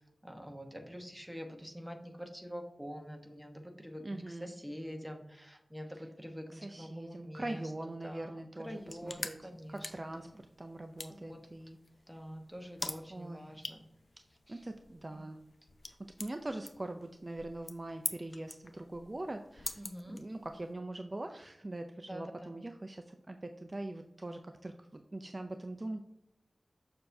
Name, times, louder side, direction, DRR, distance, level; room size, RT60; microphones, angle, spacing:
voice 1, 0.2-7.7 8.0-10.4 11.1-11.5 12.1-13.8 14.5-14.6 15.1-15.2 19.8-20.2 22.1-22.5, equal, 5° right, 3 dB, 1.0 m, -46 dB
voice 2, 4.0-4.5 6.5-9.4 9.7-10.3 10.6-11.8 13.1-13.5 14.5-15.4 15.9-19.8 20.1-26.0, right 2 dB, 30° right, 6 dB, 0.4 m, -42 dB
sound 1, 8.6-20.7, left 2 dB, 50° left, 0.6 m, -46 dB
6.7 x 6.7 x 2.6 m, 0.85 s
wide cardioid pair, 80°, 0 cm